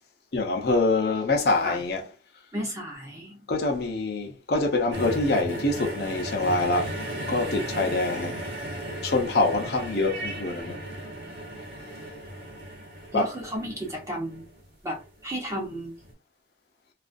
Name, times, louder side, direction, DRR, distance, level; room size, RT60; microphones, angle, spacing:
voice 1, 0.3-2.0 3.5-6.9 7.3-8.5 9.0-10.8 13.1-13.3, left 2 dB, 60° left, 0.6 m, -25 dB
voice 2, 2.5-3.4 13.1-14.5 14.8-15.9, equal, 20° right, 0.8 m, -33 dB
sound 1, 4.9-15.1 16.0-16.1, right 1 dB, 85° right, 1.0 m, -36 dB
2.4 x 2.3 x 2.5 m
head